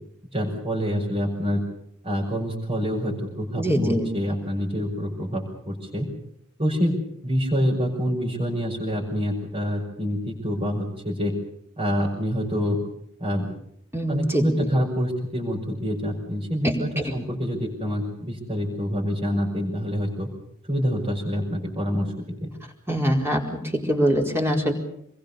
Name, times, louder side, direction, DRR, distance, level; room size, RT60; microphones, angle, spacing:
voice 1, 0.3-1.6 2.0-6.1 6.6-7.0 7.2-11.3 11.8-12.8 13.2-13.5 14.1-20.3 20.7-22.1 22.4-22.5, equal, 25° right, -4 dB, 5.9 m, -26 dB
voice 2, 3.6-4.1 13.9-14.7 16.6-16.8 17.0-17.1 22.9-24.7, equal, 10° right, 1 dB, 4.6 m, -23 dB
27.5 x 22.0 x 7.0 m, 0.72 s
head